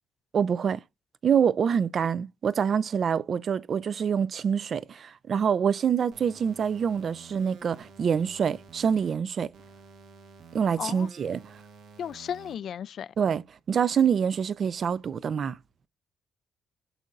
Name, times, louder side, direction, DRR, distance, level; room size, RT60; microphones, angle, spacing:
voice 1, 0.3-0.8 1.2-9.5 10.5-11.6 13.2-15.6, right 7 dB, 50° right, 0.4 m, -26 dB
sound 1, 6.1-9.1 9.5-12.5, right 4 dB, 80° right, 1.3 m, -51 dB
voice 2, 10.8-11.1 12.0-13.1, left 8 dB, 65° left, 0.3 m, -34 dB
9.0 x 6.5 x 2.4 m
cardioid pair, 90°, 0 cm